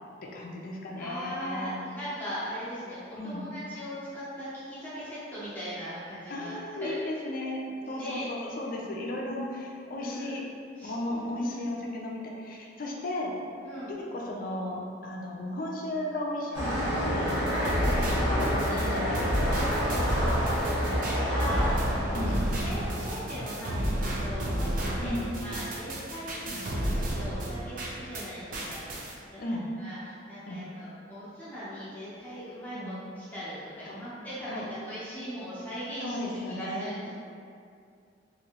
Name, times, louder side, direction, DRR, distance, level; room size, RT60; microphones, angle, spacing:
voice 1, 0.0-1.7 3.2-3.5 6.3-10.4 10.8-13.3 14.0-17.4 18.2-19.8 20.7-21.1 22.2-22.5 25.0-25.3 26.5-26.6 29.4-29.6 30.5-30.6 32.7-33.0 33.8-34.0 34.5-34.7 36.0-37.0, left 1 dB, 45° left, -1 dB, 0.4 m, -35 dB
voice 2, 1.0-6.5 6.8-7.0 7.6-8.3 10.0-10.4 10.8-11.7 13.6-13.9 17.3-17.7 20.0-37.1, equal, 10° left, -12 dB, 0.7 m, -39 dB
sound 1, 16.5-23.1, equal, 20° right, 0.9 m, -28 dB
sound 2, 17.3-28.3 28.5-29.1, right 1 dB, 45° right, 0.4 m, -32 dB
2.9 x 2.6 x 2.8 m, 2.4 s
head